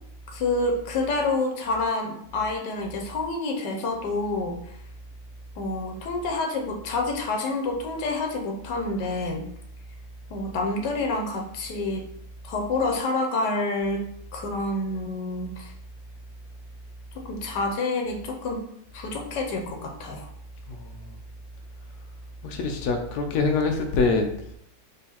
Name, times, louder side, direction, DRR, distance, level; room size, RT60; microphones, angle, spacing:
voice 1, 0.3-4.6 5.6-9.5 10.3-12.0 12.4-15.7 17.2-18.6 18.9-20.3, left 2 dB, 85° left, 2 dB, 1.4 m, -28 dB
voice 2, 22.4-24.3, left 4 dB, 70° left, 4 dB, 1.1 m, -24 dB
3.9 x 3.1 x 4.1 m, 0.72 s
omnidirectional pair, 1.8 m